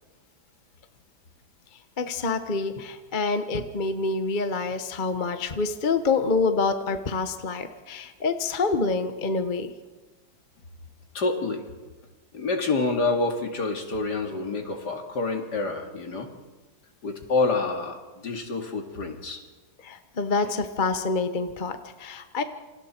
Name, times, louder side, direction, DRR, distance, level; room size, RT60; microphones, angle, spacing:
voice 1, 1.7-9.7 19.8-22.4, left 4 dB, 30° left, 8 dB, 1.0 m, -27 dB
voice 2, 11.1-11.6 12.3-16.3 17.0-19.4, left 3 dB, 55° left, 3 dB, 3.0 m, -27 dB
28.0 x 27.0 x 4.5 m, 1.2 s
omnidirectional pair, 2.1 m